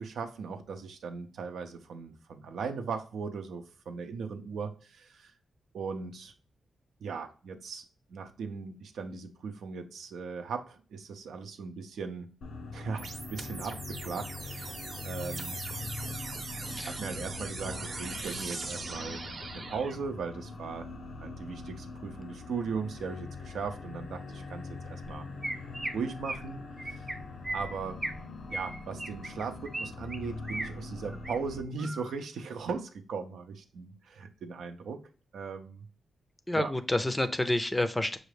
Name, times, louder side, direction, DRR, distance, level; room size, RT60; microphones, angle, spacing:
voice 1, 0.0-5.3 5.7-6.3 7.0-7.8 8.1-12.3 12.7-15.6 16.7-19.2 19.5-20.9 21.2-25.3 25.9-26.6 26.8-27.1 27.5-28.0 28.5-35.0 35.3-35.9 36.5-36.7, right 5 dB, 85° right, 0.7 m, -38 dB
sound 1, 12.4-31.6, left 3 dB, 80° left, 0.7 m, -43 dB
sound 2, 13.0-20.0, right 3 dB, 50° right, 0.8 m, -40 dB
Chirp tweet, 25.0-25.1 25.4-25.9 26.2-26.5 26.8-27.1 27.4-28.2 28.5-29.8 30.1-30.7 31.1-31.4 31.8-32.1, right 1 dB, 20° right, 0.9 m, -36 dB
voice 2, 36.5-38.2, left 1 dB, 10° left, 0.5 m, -29 dB
6.2 x 2.5 x 3.3 m
cardioid pair, 105°, 0 cm